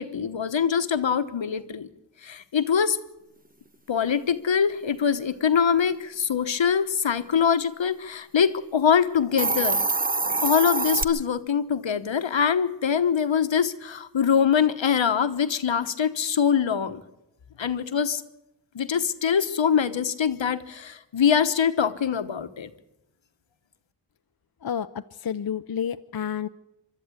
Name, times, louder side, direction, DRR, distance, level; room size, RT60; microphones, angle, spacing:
voice 1, 0.0-1.9 2.2-3.0 3.9-9.8 10.4-17.0 17.6-18.2 18.7-22.7, left 7 dB, 80° left, 11 dB, 1.2 m, -23 dB
Hiss, 9.2-11.0, right 3 dB, 20° right, 0.7 m, -24 dB
voice 2, 24.6-26.5, left 8 dB, 55° left, 10 dB, 0.6 m, -30 dB
24.5 x 12.5 x 8.6 m, 0.89 s
cardioid pair, 45°, 45 cm